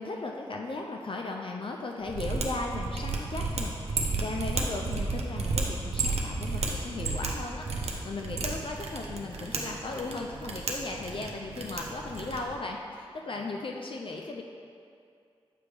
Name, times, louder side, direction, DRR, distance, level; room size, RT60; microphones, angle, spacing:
voice 1, 0.0-14.4, left 3 dB, 55° left, 1 dB, 0.5 m, -37 dB
Mechanisms, 2.1-12.5, right 3 dB, 80° right, 0.7 m, -33 dB
7.6 x 3.4 x 4.8 m, 2.4 s
cardioid pair, 45°, 11 cm